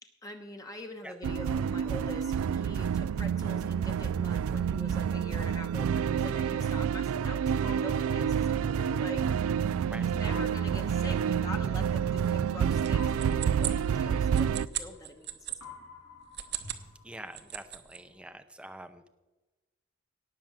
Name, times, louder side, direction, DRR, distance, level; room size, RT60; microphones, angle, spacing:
voice 1, 0.0-9.3 9.9-15.6, left 1 dB, 15° left, 4 dB, 0.9 m, -44 dB
sound 1, 1.2-14.7, right 8 dB, 80° right, 0.3 m, -28 dB
sound 2, 7.6-9.7 10.3-12.3 12.9-15.2 15.6-17.7, left 4 dB, 80° left, 2.7 m, -50 dB
sound 3, 12.8-15.6 16.2-16.9 17.2-18.0, right 12 dB, 50° right, 1.0 m, -38 dB
voice 2, 17.0-19.1, right 1 dB, 5° right, 9 dB, 0.6 m, -45 dB
18.0 x 6.0 x 7.4 m, 1.2 s
head